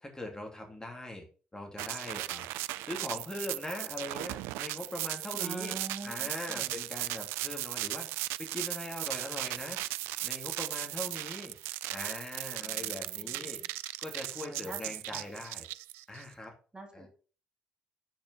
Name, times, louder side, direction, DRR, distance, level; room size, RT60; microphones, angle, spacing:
voice 1, 0.1-1.2 1.5-2.5 2.8-5.8 6.0-8.1 8.4-9.8 10.2-11.6 11.9-13.6 14.0-15.7 16.1-16.5 16.9-17.1, left 1 dB, 15° left, 1 dB, 3.0 m, -41 dB
sound 1, 1.8-16.2, right 17 dB, 65° right, 0.3 m, -37 dB
voice 2, 5.4-6.7 12.6-13.7 14.4-14.8 15.1-15.3 16.7-17.1, right 3 dB, 20° right, 2 dB, 3.1 m, -45 dB
8.6 x 6.4 x 5.8 m, 0.38 s
figure-of-eight pair, 45°, 4 cm